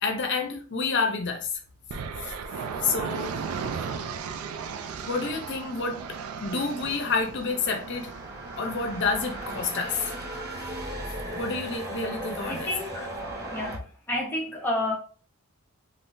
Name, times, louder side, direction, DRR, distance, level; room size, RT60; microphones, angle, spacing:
voice 1, 0.0-1.5 2.2-2.3 2.8-3.3 5.1-8.1 8.6-10.1 11.4-12.8, left 4 dB, 55° left, 0.6 m, -29 dB
sound 1, 1.9-11.8, right 6 dB, 80° right, 0.3 m, -37 dB
sound 2, 5.8-13.8, right 1 dB, 45° right, 1.0 m, -37 dB
voice 2, 12.4-13.1 13.5-13.8 14.1-14.9, left 1 dB, 10° left, 0.9 m, -30 dB
3.5 x 2.5 x 2.6 m
head